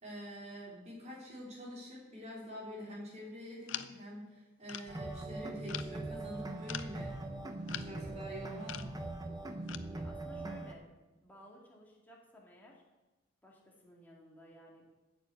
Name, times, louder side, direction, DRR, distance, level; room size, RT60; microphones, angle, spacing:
voice 1, 0.0-7.1 7.6-9.0, equal, 35° right, -4 dB, 3.4 m, -46 dB
sound 1, 3.7-4.0 4.7-5.0 5.6-5.9 6.7-6.9 7.7-8.0 8.6-9.0 9.7-9.8, left 11 dB, 70° left, 0.5 m, -42 dB
sound 2, 4.9-10.7, right 2 dB, 20° right, 0.9 m, -41 dB
voice 2, 9.9-12.8 13.4-14.9, equal, 10° left, -3 dB, 2.1 m, -57 dB
8.8 x 7.2 x 8.2 m, 1.1 s
head